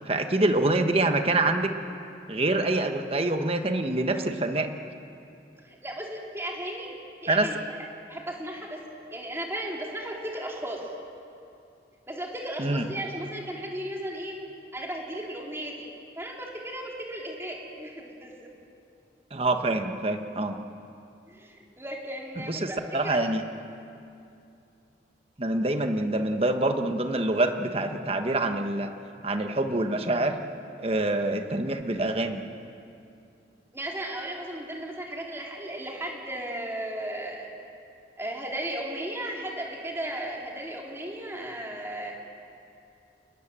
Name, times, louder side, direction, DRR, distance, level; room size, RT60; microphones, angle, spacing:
voice 1, 0.1-1.7 2.3-4.7 7.3-7.5 12.6-12.9 19.3-20.6 22.4-23.4 25.4-28.9 29.2-30.4 30.8-32.4, right 2 dB, 35° right, 6 dB, 1.3 m, -26 dB
voice 2, 5.6-7.6 8.1-8.8 9.1-10.8 12.1-14.4 14.7-15.9 16.2-18.5 21.3-22.8 23.0-23.2 33.7-37.5 38.2-42.1, right 1 dB, 15° right, -2 dB, 3.6 m, -35 dB
28.5 x 20.0 x 7.6 m, 2.6 s
head